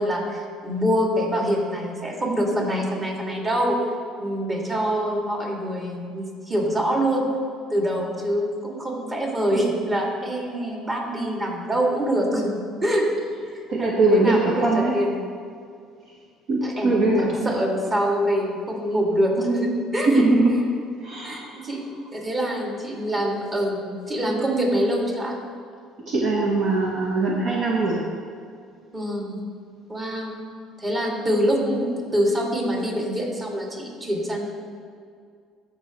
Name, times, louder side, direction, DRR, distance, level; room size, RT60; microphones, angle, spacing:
voice 1, 0.0-3.8 4.2-7.3 7.7-13.1 13.8-15.3 16.6-20.2 21.2-25.3 28.9-29.4 29.9-30.4 30.8-34.4, equal, 30° right, -2 dB, 2.3 m, -25 dB
voice 2, 13.7-14.9 16.5-17.5 20.2-20.5 21.0-21.6 26.1-28.0, right 2 dB, 60° right, -3 dB, 1.1 m, -21 dB
13.5 x 5.4 x 3.1 m, 2.2 s
supercardioid pair, 80°, 0 cm